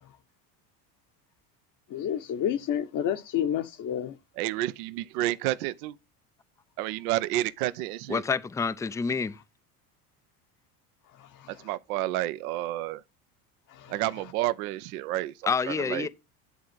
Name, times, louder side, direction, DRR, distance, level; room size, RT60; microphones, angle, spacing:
voice 1, 1.9-4.2 11.1-11.7 13.7-14.0, left 9 dB, 40° left, 0.9 m, -30 dB
voice 2, 4.4-6.0 6.8-8.2 11.5-13.0 13.9-16.1, right 15 dB, 70° right, 0.7 m, -30 dB
voice 3, 8.1-9.4 15.5-16.1, left 5 dB, 5° left, 0.4 m, -28 dB
10.5 x 3.5 x 6.0 m
hypercardioid pair, 75°, 47 cm